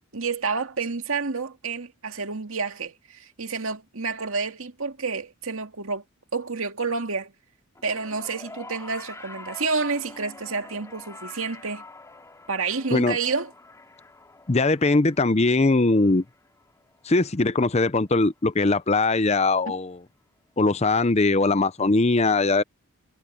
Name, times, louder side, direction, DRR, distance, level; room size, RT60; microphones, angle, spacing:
voice 1, 0.1-6.0 6.3-7.3 7.8-11.8 12.5-13.5 19.7-19.8, right 4 dB, 85° right, 2.1 m, -29 dB
sound 1, 7.8-18.2 19.2-19.3, left 2 dB, 15° left, 2.8 m, -46 dB
voice 2, 14.5-16.2 17.1-20.0 20.6-22.6, left 3 dB, 30° left, 0.7 m, -21 dB
head